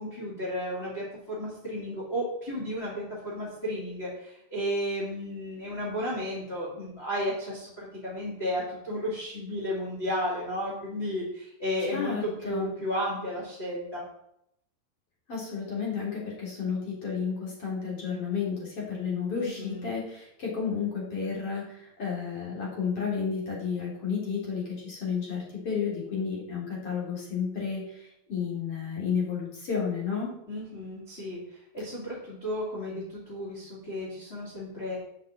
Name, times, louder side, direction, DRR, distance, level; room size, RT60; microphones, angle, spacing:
voice 1, 0.0-14.0 19.3-19.9 30.5-35.0, equal, 20° left, -7 dB, 2.7 m, -33 dB
voice 2, 11.9-12.7 15.3-30.4, left 6 dB, 40° left, -4 dB, 4.3 m, -32 dB
8.5 x 6.6 x 7.6 m, 0.77 s
omnidirectional pair, 4.1 m